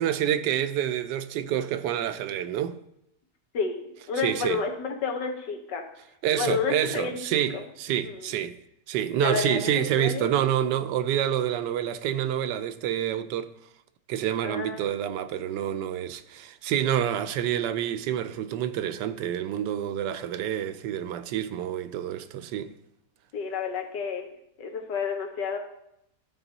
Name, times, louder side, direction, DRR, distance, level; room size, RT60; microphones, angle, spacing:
voice 1, 0.0-2.8 4.2-4.6 6.2-8.5 8.9-13.5 14.1-22.7, right 10 dB, 85° right, 1.2 m, -28 dB
voice 2, 3.5-5.8 6.3-7.6 8.0-8.3 9.2-10.3 14.4-15.0 23.3-24.3 24.6-25.6, left 5 dB, 85° left, 1.7 m, -30 dB
13.0 x 4.7 x 4.0 m
omnidirectional pair, 1.8 m